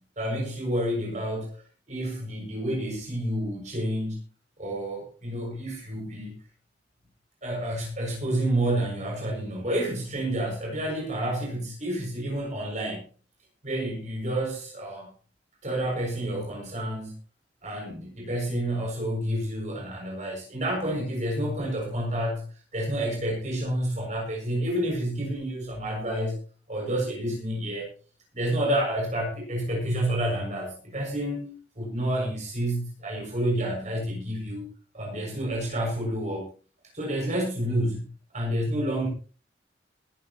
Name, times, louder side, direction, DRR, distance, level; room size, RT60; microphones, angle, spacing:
voice 1, 0.0-1.6 1.9-4.2 4.6-6.3 7.4-13.1 13.6-15.1 15.6-17.1 17.6-22.4 22.7-26.4 26.7-27.9 28.3-34.6 34.9-36.5 36.9-39.1, right 1 dB, 40° right, -1 dB, 6.9 m, -29 dB
20.0 x 13.5 x 3.1 m, 0.37 s
head